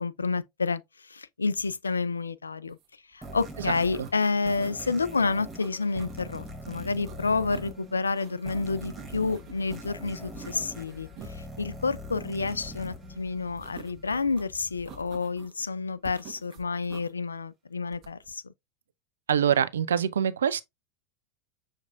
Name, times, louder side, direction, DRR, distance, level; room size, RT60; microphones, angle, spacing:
voice 1, 0.0-2.8 3.1-18.5, left 4 dB, 90° left, 0.3 m, -29 dB
sound 1, 2.7-2.9 3.1-4.9 5.5-6.5 6.8-7.8 8.1-9.9 10.3-11.3 13.6-14.4 14.9-15.6 16.0-17.1 17.9-18.3, right 9 dB, 40° right, 1.3 m, -49 dB
sound 2, 3.2-14.0, equal, 10° right, 1.3 m, -43 dB
sound 3, 9.0-15.2, left 6 dB, 35° left, 2.3 m, -50 dB
voice 2, 19.3-20.6, right 8 dB, 80° right, 0.4 m, -24 dB
6.4 x 3.2 x 2.4 m
hypercardioid pair, 90°, 0 cm